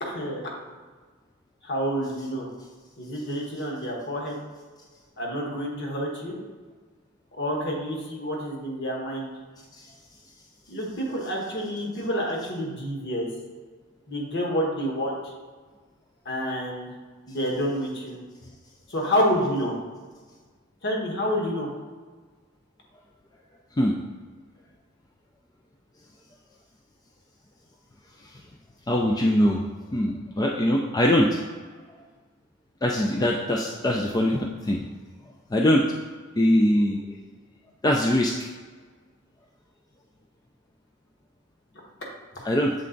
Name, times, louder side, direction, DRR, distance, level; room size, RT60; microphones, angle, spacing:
voice 1, 0.0-0.4 1.6-2.5 3.0-4.4 5.2-6.4 7.3-9.3 10.7-13.3 14.1-15.3 16.2-16.9 17.3-18.2 18.9-19.8 20.8-21.7, equal, 55° left, -2 dB, 1.3 m, -28 dB
voice 2, 28.9-29.6 29.9-31.4 32.8-34.8 35.5-35.9 36.4-37.2 37.8-38.4 42.4-42.7, left 1 dB, 20° left, 0 dB, 0.3 m, -22 dB
7.4 x 3.3 x 3.8 m, 1.4 s
head